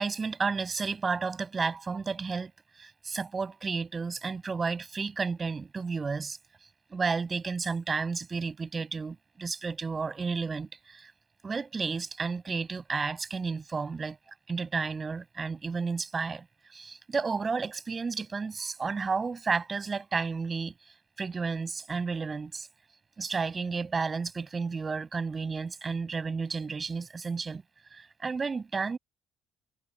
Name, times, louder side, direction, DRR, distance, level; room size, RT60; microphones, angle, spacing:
voice 1, 0.0-2.5 2.8-6.4 6.9-11.1 11.4-14.2 14.5-16.5 16.7-20.7 21.2-22.7 23.2-27.6 27.9-29.0, right 4 dB, 25° right, 7.5 m, -32 dB
cardioid pair, 115°, 0 cm